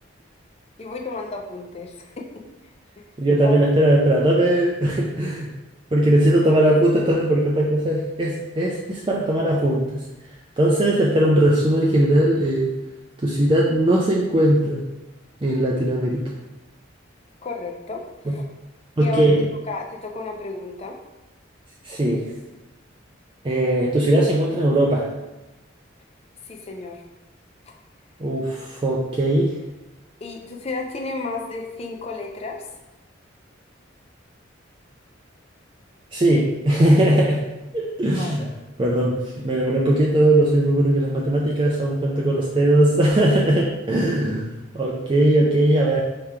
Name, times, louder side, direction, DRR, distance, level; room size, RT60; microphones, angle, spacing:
voice 1, 0.8-2.3 3.0-3.1 3.4-3.8 17.4-18.4 19.0-19.3 19.7-21.0 26.4-27.0 30.2-32.7 38.1-38.5, left 3 dB, 30° left, 1 dB, 0.5 m, -32 dB
voice 2, 3.2-5.5 5.9-10.0 10.6-12.7 13.2-14.8 15.4-16.3 18.3-18.4 19.0-19.5 21.8-22.3 23.4-25.1 28.2-29.5 36.1-37.4 37.7-38.5 38.8-46.0, right 1 dB, 25° right, -4 dB, 0.4 m, -19 dB
3.5 x 2.9 x 4.7 m, 1.0 s
head